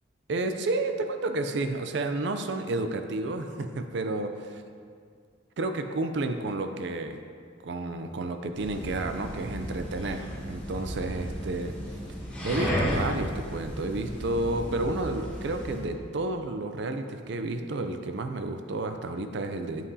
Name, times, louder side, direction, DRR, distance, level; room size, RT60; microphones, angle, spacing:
voice 1, 0.3-4.4 5.6-7.2 7.6-11.7 12.4-19.9, right 2 dB, 60° right, 7 dB, 0.5 m, -31 dB
sound 1, 8.5-15.9, equal, 5° left, 1.8 m, -34 dB
8.4 x 7.5 x 2.8 m, 2.1 s
head